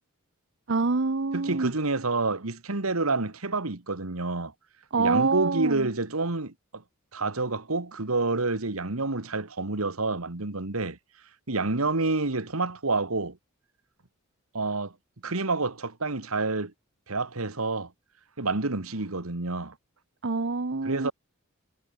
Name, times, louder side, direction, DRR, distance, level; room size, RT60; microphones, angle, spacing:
voice 1, 0.7-1.7 4.9-5.9 20.2-21.1, right 4 dB, 60° right, 0.9 m, -26 dB
voice 2, 1.3-4.5 5.0-6.8 7.1-11.0 11.5-13.4 14.5-14.9 15.2-16.7 17.1-17.9 18.4-19.7 20.8-21.1, right 3 dB, 85° right, 2.0 m, -28 dB
head